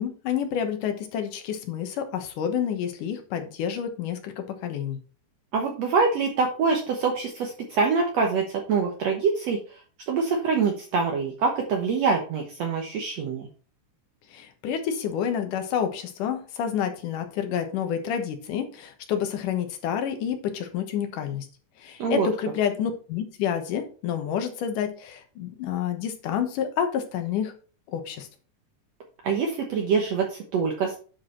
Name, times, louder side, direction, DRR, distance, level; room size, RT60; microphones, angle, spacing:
voice 1, 0.0-5.0 14.3-21.5 21.8-27.5 27.9-28.3, left 8 dB, 75° left, 6 dB, 2.7 m, -29 dB
voice 2, 5.5-9.8 10.1-13.5 22.0-22.3 29.2-31.0, right 5 dB, 60° right, 1 dB, 2.0 m, -25 dB
10.0 x 4.8 x 4.3 m, 0.39 s
omnidirectional pair, 3.7 m